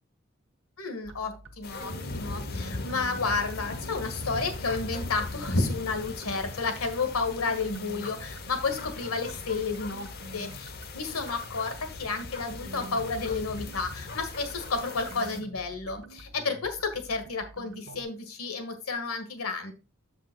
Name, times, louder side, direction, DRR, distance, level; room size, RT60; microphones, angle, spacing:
voice 1, 0.8-19.7, left 4 dB, 90° left, 1.8 m, -31 dB
sound 1, 1.0-18.0, right 2 dB, 60° right, 1.0 m, -47 dB
Idiot dog in thunderstorm, 1.6-15.4, left 3 dB, 45° left, 0.8 m, -39 dB
13.5 x 5.4 x 2.3 m
head